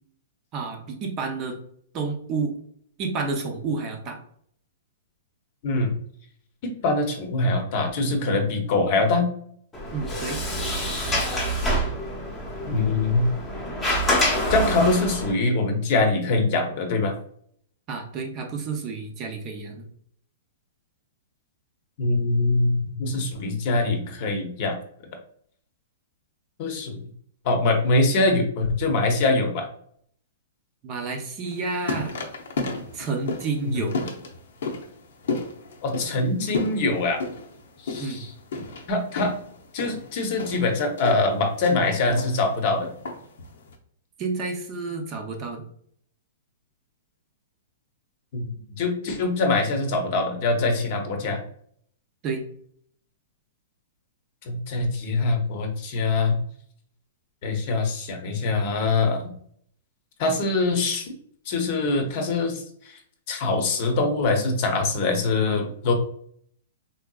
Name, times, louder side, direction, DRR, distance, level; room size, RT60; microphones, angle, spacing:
voice 1, 0.5-1.6 1.9-2.5 3.0-4.2 9.9-10.4 17.9-19.9 30.8-32.1 32.9-34.0 38.0-38.2 44.2-45.6 52.2-52.4, right 4 dB, 30° right, 4 dB, 0.6 m, -30 dB
voice 2, 6.6-9.3 12.7-13.3 14.5-17.2 22.0-24.8 26.6-27.0 27.4-29.7 33.6-33.8 35.8-37.2 37.8-38.3 38.9-39.3 39.7-42.9 48.3-51.4 54.4-56.4 57.4-59.3 60.2-61.1 61.5-63.0 63.3-65.9, left 3 dB, 45° left, 4 dB, 0.8 m, -23 dB
Sliding door, 9.7-15.3, equal, 10° left, 0.8 m, -26 dB
sound 1, 31.4-43.7, left 3 dB, 75° left, 0.7 m, -33 dB
3.5 x 2.7 x 2.3 m, 0.64 s
hypercardioid pair, 150°, 0 cm